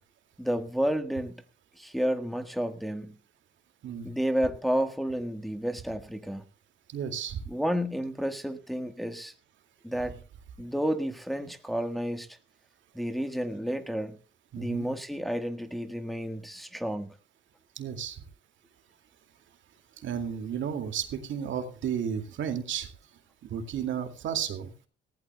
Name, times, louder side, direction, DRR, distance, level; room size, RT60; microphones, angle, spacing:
voice 1, 0.4-1.4 1.8-3.2 4.0-6.4 7.5-9.3 9.8-10.2 10.6-12.4 12.9-14.2 14.6-17.1, equal, ahead, 7 dB, 1.4 m, -31 dB
voice 2, 6.9-7.4 14.5-14.9 17.8-18.2 20.0-22.9 23.4-24.7, right 8 dB, 75° right, 7 dB, 2.3 m, -33 dB
18.0 x 15.5 x 2.3 m, 0.37 s
cardioid pair, 90°, 20 cm